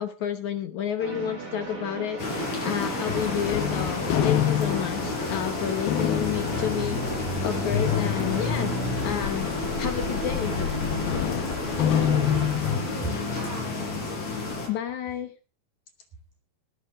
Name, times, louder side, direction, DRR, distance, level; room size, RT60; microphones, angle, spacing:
voice 1, 0.0-8.7 9.0-9.5 9.8-10.5 14.7-15.3, left 9 dB, 65° left, 9 dB, 2.2 m, -30 dB
sound 1, 1.0-12.5, right 3 dB, 35° right, 6.6 m, -38 dB
sound 2, 2.2-14.7, left 3 dB, 50° left, 5.7 m, -31 dB
sound 3, 3.1-12.8, left 9 dB, 80° left, 3.0 m, -28 dB
voice 2, 11.8-14.0, right 3 dB, 70° right, 2 dB, 6.0 m, -38 dB
19.0 x 11.0 x 3.6 m, 0.35 s
omnidirectional pair, 4.2 m